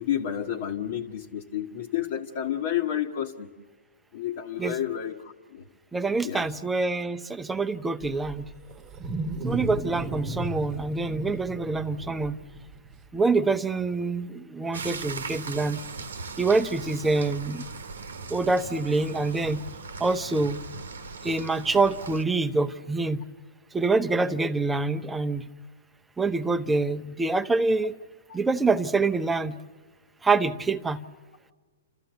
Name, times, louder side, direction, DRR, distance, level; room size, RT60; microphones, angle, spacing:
voice 1, 0.0-3.5 4.1-5.7 6.2-6.5 28.3-28.4, left 10 dB, 55° left, -1 dB, 1.3 m, -30 dB
voice 2, 5.9-8.5 9.4-12.4 13.1-15.8 16.4-17.6 18.3-19.6 20.0-20.6 21.2-23.3 23.7-25.5 26.2-28.0 28.3-29.6 30.2-31.0, right 3 dB, 10° right, 9 dB, 0.7 m, -26 dB
Wild animals, 8.0-13.0, right 2 dB, 25° right, 1.1 m, -35 dB
sound 1, 14.7-22.2, right 4 dB, 85° right, 1.2 m, -39 dB
29.5 x 13.5 x 8.0 m, 1.5 s
hypercardioid pair, 130°, 0 cm